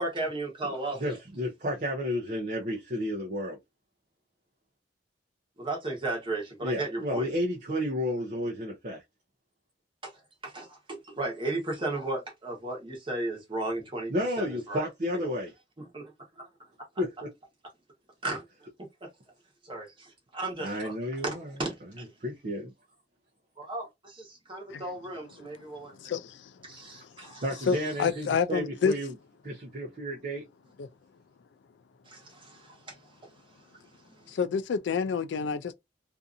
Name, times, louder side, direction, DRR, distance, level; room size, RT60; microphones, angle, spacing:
voice 1, 0.0-1.2 5.6-7.3 10.0-10.1 10.4-14.9 15.8-16.0 16.4-16.5 18.2-18.4 19.6-20.9 21.2-21.3 21.6-21.7 23.6-25.9 26.6-27.4 32.1-32.9, right 2 dB, 30° right, 1.1 m, -35 dB
voice 2, 1.0-3.6 6.6-9.0 14.1-15.5 17.0-17.3 20.6-21.5 22.2-22.7 27.4-29.1 29.4-30.4, equal, 45° right, 0.6 m, -32 dB
voice 3, 26.0-26.5 27.2-27.3 27.7-28.9 30.8-30.9 34.3-35.7, left 6 dB, 70° left, 0.4 m, -28 dB
2.6 x 2.5 x 2.4 m
head